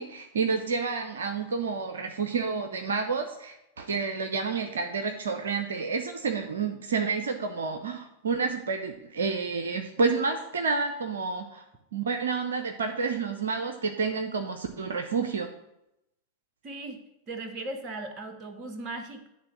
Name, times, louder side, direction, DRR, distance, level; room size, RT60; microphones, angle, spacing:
voice 1, 0.0-11.6 11.9-15.5, right 4 dB, 65° right, 6 dB, 0.6 m, -29 dB
voice 2, 16.6-19.3, right 2 dB, 35° right, 6 dB, 1.0 m, -38 dB
9.6 x 3.6 x 6.0 m, 0.85 s
figure-of-eight pair, 90°, 0 cm